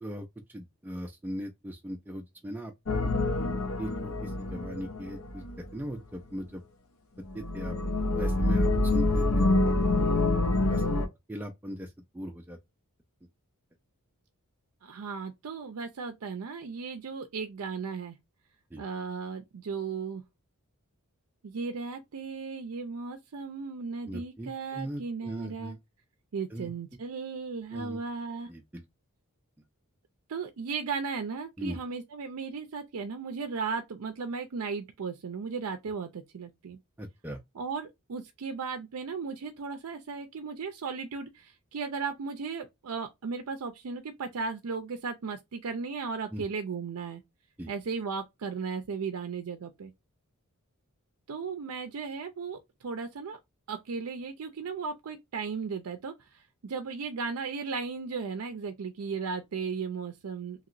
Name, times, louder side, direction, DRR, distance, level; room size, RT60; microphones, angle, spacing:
voice 1, 0.0-2.7 3.8-6.6 7.3-7.8 8.2-10.1 10.7-12.6 18.7-18.8 24.1-25.8 26.5-26.7 27.7-28.0 28.5-28.8 31.6-31.8 37.0-37.4 46.3-46.4 47.6-47.7, equal, 10° right, 0.4 m, -39 dB
sound 1, 2.9-5.6 7.2-11.1, left 2 dB, 70° left, 0.7 m, -26 dB
voice 2, 14.8-18.2 18.8-20.2 21.4-25.8 26.3-28.5 30.3-36.8 37.5-47.2 47.7-49.9 51.3-53.4 53.7-60.7, right 5 dB, 75° right, 0.5 m, -36 dB
2.9 x 2.9 x 2.5 m
head